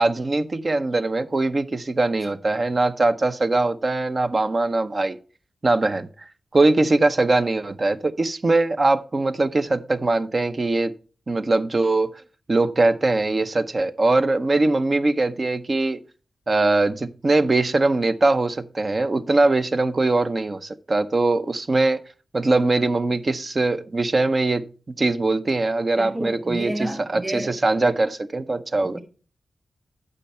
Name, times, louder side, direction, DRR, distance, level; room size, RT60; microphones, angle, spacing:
voice 1, 0.0-5.2 5.6-6.1 6.5-10.9 11.3-12.2 12.5-16.0 16.5-22.0 22.3-24.7 25.0-29.0, right 2 dB, 50° right, 0.7 m, -21 dB
voice 2, 26.0-27.5 28.8-29.0, right 1 dB, 20° right, 4.9 m, -30 dB
9.0 x 6.7 x 4.3 m
cardioid pair, 50°, 0 cm